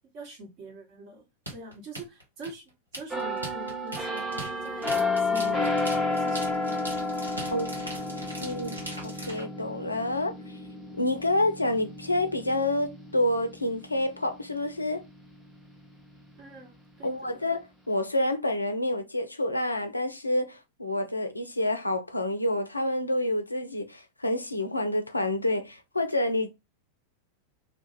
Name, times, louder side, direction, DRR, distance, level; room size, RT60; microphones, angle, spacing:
voice 1, 0.1-2.6 2.9-4.9 5.2-5.7 6.1-6.9 16.4-17.4, right 1 dB, 40° right, 1.0 m, -44 dB
sound 1, 1.5-9.4, right 1 dB, 85° right, 0.8 m, -40 dB
sound 2, 3.1-14.6 15.1-15.3, left 2 dB, 5° right, 0.7 m, -31 dB
voice 2, 7.5-7.9 8.2-8.8 9.0-10.6 11.0-15.0 17.0-26.5, left 1 dB, 80° left, 0.4 m, -28 dB
2.2 x 2.0 x 3.0 m
figure-of-eight pair, 90°, 0 cm